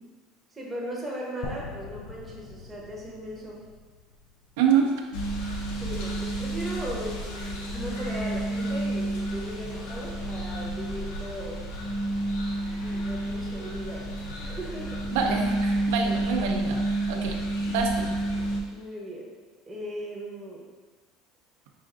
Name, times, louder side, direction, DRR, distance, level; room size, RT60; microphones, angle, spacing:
voice 1, 0.5-3.6 5.7-11.6 12.8-15.1 18.7-19.3 19.7-20.6, equal, 10° right, -4 dB, 0.8 m, -38 dB
sound 1, 1.4-5.5, left 3 dB, 60° left, 0.4 m, -43 dB
voice 2, 4.6-4.9 15.1-16.8 17.1-17.4 17.7-18.1, right 7 dB, 85° right, 1 dB, 0.5 m, -26 dB
sound 2, 5.1-18.6, right 1 dB, 85° left, 0.8 m, -30 dB
5.5 x 2.5 x 3.7 m, 1.4 s
cardioid pair, 165°, 0 cm